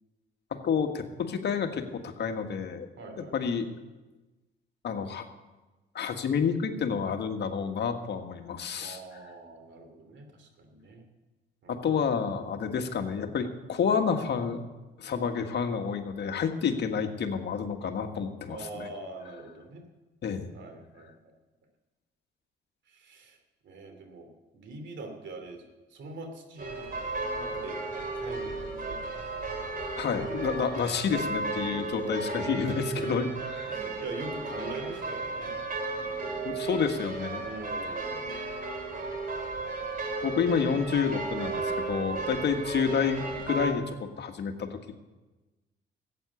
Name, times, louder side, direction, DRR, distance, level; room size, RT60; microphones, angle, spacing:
voice 1, 0.5-2.9 3.2-3.7 4.8-5.2 5.9-9.0 11.7-14.6 15.0-18.9 20.2-20.5 30.0-33.8 36.4-37.5 40.2-45.0, left 6 dB, 60° left, 5 dB, 1.6 m, -29 dB
voice 2, 3.0-3.3 8.8-11.1 11.6-11.9 15.1-15.3 16.6-16.8 18.5-19.8 20.5-21.1 22.9-23.4 23.6-25.6 25.9-26.9 27.4-27.8 28.1-29.0 31.5-31.9 32.5-33.1 33.7-35.6 36.0-36.4 37.4-38.4 42.3-42.5, right 3 dB, 65° right, 6 dB, 2.8 m, -43 dB
sound 1, 26.6-43.7, right 3 dB, 45° right, 2.9 m, -34 dB
14.5 x 8.9 x 8.3 m, 1.1 s
cardioid pair, 90°, 20 cm